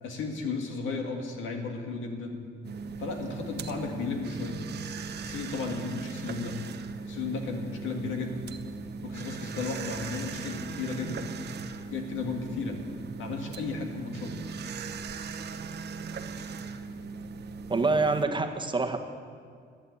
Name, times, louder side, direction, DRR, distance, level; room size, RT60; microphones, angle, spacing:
voice 1, 0.0-2.4 3.0-4.6 5.2-6.6 7.1-8.4 9.0-11.3 11.9-12.8 13.2-14.4, left 4 dB, 80° left, 3 dB, 1.9 m, -34 dB
sound 1, 2.6-18.3, right 5 dB, 55° right, 0.9 m, -39 dB
voice 2, 17.7-19.0, right 3 dB, 25° right, 5 dB, 1.1 m, -26 dB
11.0 x 10.0 x 8.1 m, 2.1 s
cardioid pair, 90°, 20 cm